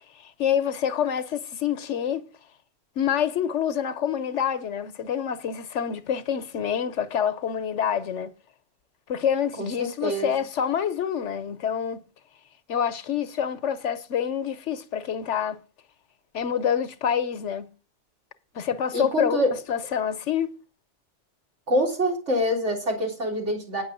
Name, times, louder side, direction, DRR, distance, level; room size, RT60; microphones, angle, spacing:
voice 1, 0.2-2.2 3.0-8.3 9.1-12.0 12.7-15.6 16.3-17.7 18.5-19.4 19.7-20.6, left 8 dB, 80° left, 1.2 m, -27 dB
voice 2, 9.6-10.3 18.9-19.6 21.7-23.8, equal, 80° right, 3.8 m, -25 dB
9.5 x 6.5 x 7.6 m
omnidirectional pair, 1.2 m